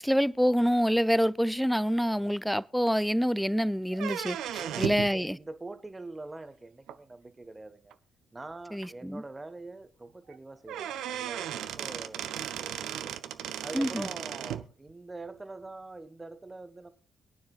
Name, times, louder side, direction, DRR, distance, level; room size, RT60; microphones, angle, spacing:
voice 1, 0.0-5.4 8.7-9.2 13.7-14.1, equal, ahead, 0.5 m, -27 dB
voice 2, 2.0-2.4 4.6-8.0 8.3-13.2 13.6-16.9, right 2 dB, 25° right, 1.2 m, -44 dB
sound 1, 3.9-5.1 6.9-7.0 7.9-8.0 8.4-8.5 8.8-8.9 10.3-10.4 10.7-14.6, right 11 dB, 70° right, 0.5 m, -36 dB
22.5 x 9.5 x 2.4 m
hypercardioid pair, 40°, 0 cm